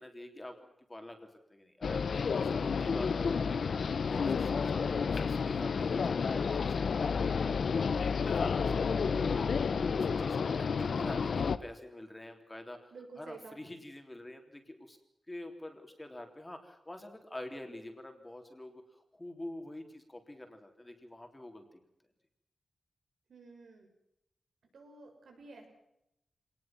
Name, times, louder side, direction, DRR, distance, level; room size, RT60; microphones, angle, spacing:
voice 1, 0.0-15.0 15.3-21.8, left 1 dB, 15° left, 4 dB, 3.5 m, -47 dB
sound 1, 1.8-11.6, left 5 dB, 70° left, 1.0 m, -30 dB
voice 2, 12.9-13.6 23.3-23.9 24.7-25.7, right 3 dB, 85° right, 3 dB, 7.0 m, -51 dB
26.0 x 19.5 x 6.1 m, 0.82 s
wide cardioid pair, 145°, 0 cm